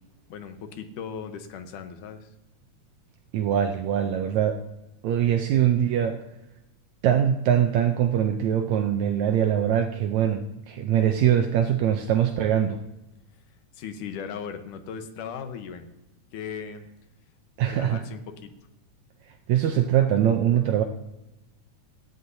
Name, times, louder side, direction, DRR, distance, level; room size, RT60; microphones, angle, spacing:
voice 1, 0.3-2.3 13.7-15.9 16.3-16.9 17.7-18.5, left 7 dB, 90° left, 7 dB, 2.6 m, -37 dB
voice 2, 3.3-4.6 5.0-6.2 7.0-12.8 17.6-18.0 19.5-20.8, right 10 dB, 75° right, 6 dB, 1.8 m, -22 dB
17.5 x 14.0 x 2.7 m, 0.96 s
omnidirectional pair, 3.5 m